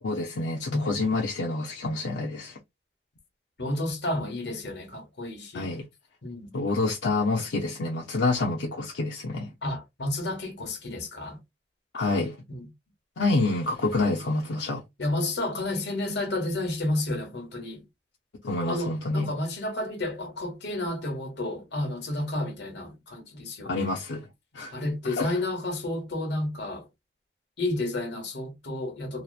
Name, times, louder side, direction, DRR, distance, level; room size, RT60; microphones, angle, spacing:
voice 1, 0.0-2.6 5.5-5.9 6.5-9.5 11.9-12.4 13.2-14.8 18.4-19.3 23.6-24.3 24.5-24.7 25.0-25.4, left 2 dB, 90° left, 0.6 m, -27 dB
voice 2, 3.6-5.7 6.2-6.6 9.6-11.4 12.5-12.7 15.0-17.8 18.7-23.9 24.7-26.9 27.6-29.2, left 1 dB, 70° left, 1.1 m, -31 dB
2.9 x 2.0 x 2.3 m
head